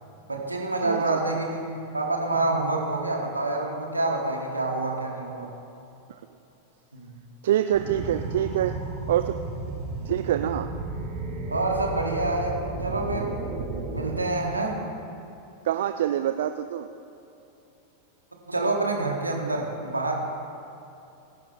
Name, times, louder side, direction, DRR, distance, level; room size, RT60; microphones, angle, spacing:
voice 1, 0.3-5.5 6.9-7.1 11.5-13.3 13.9-14.8 18.5-20.1, right 2 dB, 80° right, 0 dB, 2.0 m, -27 dB
voice 2, 0.8-1.2 6.1-6.2 7.4-8.8 9.1-9.4 10.0-10.7 15.6-16.9, right 11 dB, 60° right, 9 dB, 0.4 m, -25 dB
sound 1, 7.7-14.2, right 3 dB, 35° right, 2.7 m, -33 dB
21.0 x 10.5 x 3.2 m, 2.9 s
figure-of-eight pair, 90°, 0 cm